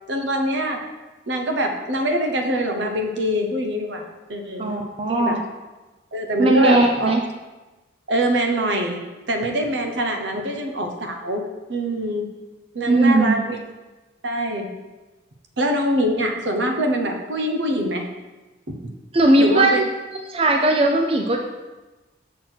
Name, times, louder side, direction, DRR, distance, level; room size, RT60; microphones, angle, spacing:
voice 1, 0.1-0.8 1.3-4.8 5.1-5.4 6.1-7.1 8.1-9.0 9.3-12.3 12.7-13.6 14.2-14.7 15.6-18.1 18.7-18.8 19.4-19.8, equal, 75° right, 3 dB, 1.0 m, -24 dB
voice 2, 4.6-5.4 6.4-7.2 10.3-10.4 12.9-13.4 19.1-19.9 20.3-21.4, right 2 dB, 30° right, 2 dB, 0.5 m, -18 dB
6.2 x 4.1 x 6.2 m, 1.1 s
head